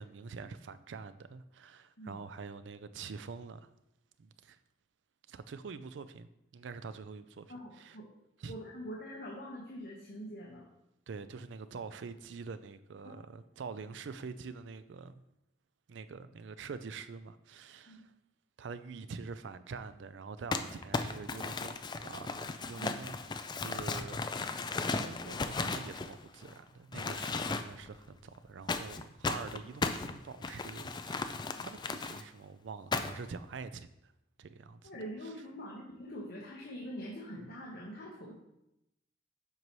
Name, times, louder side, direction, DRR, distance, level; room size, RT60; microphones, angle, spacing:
voice 1, 0.0-3.7 4.2-4.6 5.3-8.0 8.4-8.5 11.1-15.1 15.9-18.1 18.6-23.2 23.6-24.5 25.0-34.1 34.4-34.9, right 5 dB, 85° right, 0.4 m, -45 dB
voice 2, 7.5-8.1 8.5-10.6 13.0-13.2 17.9-18.0 22.8-22.9 34.8-38.3, equal, 60° left, 1.2 m, -44 dB
Crumpling crinkling, 20.5-26.5 26.9-27.9 28.7-32.2 32.9-33.3, left 4 dB, 25° left, 0.3 m, -36 dB
7.8 x 5.4 x 3.1 m
head